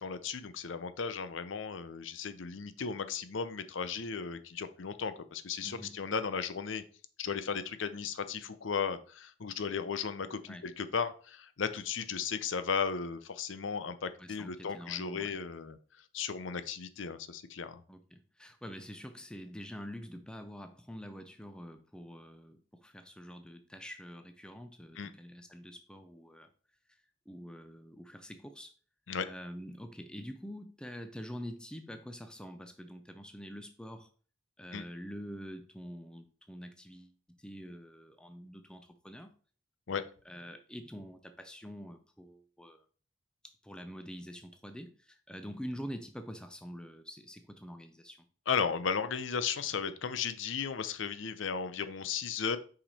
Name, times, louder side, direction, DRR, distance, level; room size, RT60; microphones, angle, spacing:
voice 1, 0.0-6.8 7.2-15.8 16.1-17.8 25.0-25.1 29.1-29.3 34.7-34.8 39.9-40.0 48.5-52.6, left 6 dB, 80° left, 0.6 m, -35 dB
voice 2, 5.6-6.0 10.5-10.7 14.2-15.4 17.9-26.5 27.3-28.7 29.2-34.1 34.6-39.3 40.3-42.8 43.6-48.2, equal, 5° left, 0.5 m, -46 dB
5.8 x 5.1 x 4.1 m
head